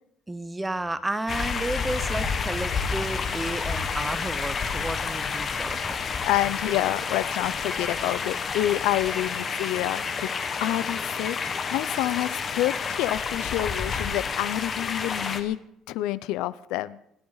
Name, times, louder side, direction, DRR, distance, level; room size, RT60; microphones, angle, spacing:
voice 1, 0.3-6.0, right 1 dB, 10° right, 13 dB, 0.8 m, -32 dB
sound 1, 1.3-15.4, left 5 dB, 30° left, 1.4 m, -30 dB
voice 2, 6.2-10.3 10.6-11.4 11.7-15.6 15.9-17.0, left 15 dB, 80° left, 17 dB, 0.6 m, -28 dB
26.5 x 11.5 x 4.0 m, 0.78 s
cardioid pair, 140°, 0 cm